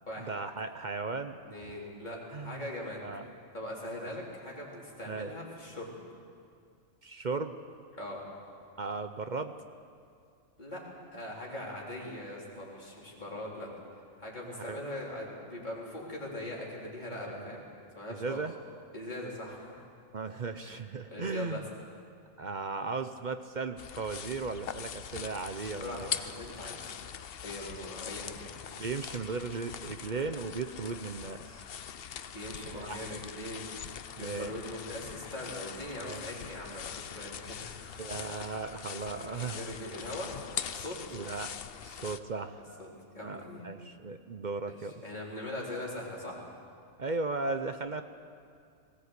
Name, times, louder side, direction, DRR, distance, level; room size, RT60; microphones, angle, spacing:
voice 1, 0.2-1.7 2.3-2.7 3.0-3.3 4.0-4.1 5.1-5.3 7.0-7.6 8.8-9.5 14.5-14.8 17.1-17.5 18.1-18.5 20.1-21.7 22.4-26.1 28.7-31.6 32.7-33.2 34.2-34.6 36.0-36.2 38.0-39.6 41.1-41.5 41.8-42.9 43.2-45.0 47.0-48.0, right 4 dB, 45° right, 8 dB, 0.7 m, -36 dB
voice 2, 1.4-3.0 3.5-5.9 8.0-8.2 10.6-10.8 11.1-13.7 14.2-17.6 18.0-18.4 18.9-19.8 20.6-20.8 21.1-21.6 25.8-27.0 27.4-28.5 32.2-33.7 34.1-38.1 38.9-40.3 40.7-41.2 42.8-42.9 43.1-43.6 44.7-46.4, left 1 dB, 30° left, -4 dB, 4.1 m, -41 dB
sound 1, 23.8-42.2, left 8 dB, 55° left, 0.7 m, -42 dB
20.0 x 16.5 x 8.2 m, 2.3 s
omnidirectional pair, 1.5 m